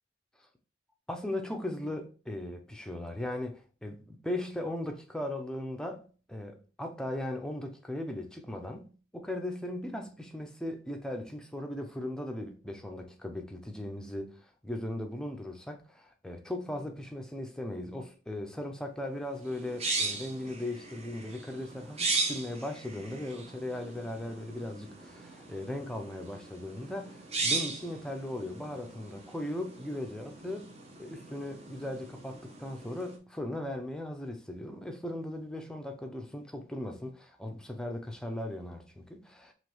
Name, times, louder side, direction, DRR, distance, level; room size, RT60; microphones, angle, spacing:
voice 1, 1.1-6.0 6.3-30.7 31.0-39.5, left 1 dB, 5° left, 0.5 m, -38 dB
sound 1, 19.4-33.2, right 3 dB, 35° right, 0.7 m, -38 dB
5.0 x 3.1 x 3.1 m
head